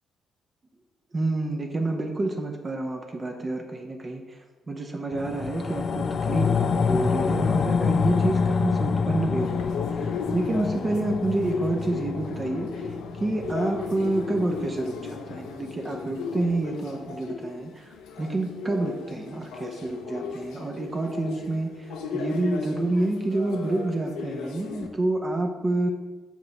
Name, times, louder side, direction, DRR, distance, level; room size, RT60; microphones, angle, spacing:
voice 1, 1.1-4.4 4.7-12.9 13.2-25.9, right 2 dB, 30° right, 3 dB, 0.7 m, -28 dB
sound 1, 5.1-15.7 16.1-16.2, left 5 dB, 50° left, 0.3 m, -27 dB
sound 2, 9.4-24.9, left 4 dB, 90° left, 0.6 m, -36 dB
6.5 x 5.0 x 3.3 m, 1.3 s
cardioid pair, 90°, 0 cm